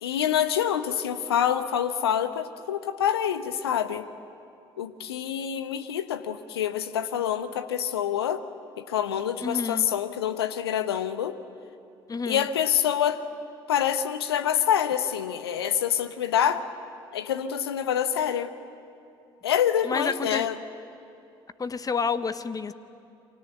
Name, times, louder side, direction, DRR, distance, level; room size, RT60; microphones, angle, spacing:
voice 1, 0.0-4.0 4.8-8.4 8.8-11.4 12.3-13.2 13.7-16.6 17.1-18.5 19.4-20.6, left 9 dB, 80° left, 12 dB, 1.0 m, -26 dB
voice 2, 9.4-9.8 12.1-12.5 19.8-20.5 21.6-22.7, left 5 dB, 30° left, 13 dB, 1.1 m, -29 dB
29.0 x 24.0 x 8.1 m, 2.6 s
figure-of-eight pair, 50°, 13 cm